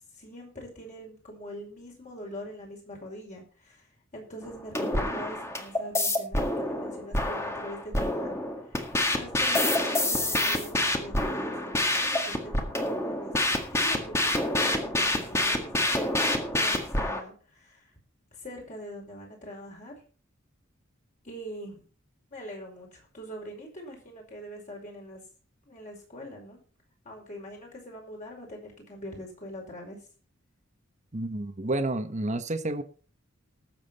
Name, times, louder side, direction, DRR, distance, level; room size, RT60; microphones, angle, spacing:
voice 1, 0.2-3.9 4.1-13.3 13.7-17.9 18.3-19.9 21.2-21.8 22.3-25.2 25.7-26.6 27.0-30.0, equal, 40° left, 5.4 m, -43 dB
sound 1, 4.4-17.2, left 1 dB, 15° left, 1.8 m, -27 dB
voice 2, 31.1-32.8, right 2 dB, 35° right, 1.3 m, -30 dB
19.0 x 7.6 x 4.3 m
head